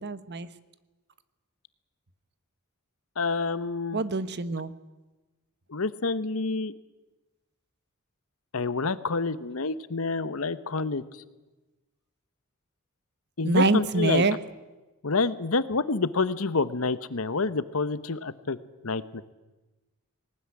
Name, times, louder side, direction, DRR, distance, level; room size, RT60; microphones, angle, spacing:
voice 1, 0.0-0.5 3.9-4.7 13.4-14.4, right 3 dB, 50° right, 14 dB, 1.1 m, -25 dB
voice 2, 3.2-4.0 5.7-6.7 8.5-11.0 13.4-14.2 15.0-18.6 18.8-19.2, left 3 dB, 70° left, 15 dB, 1.0 m, -28 dB
19.5 x 19.0 x 9.8 m, 1.1 s
head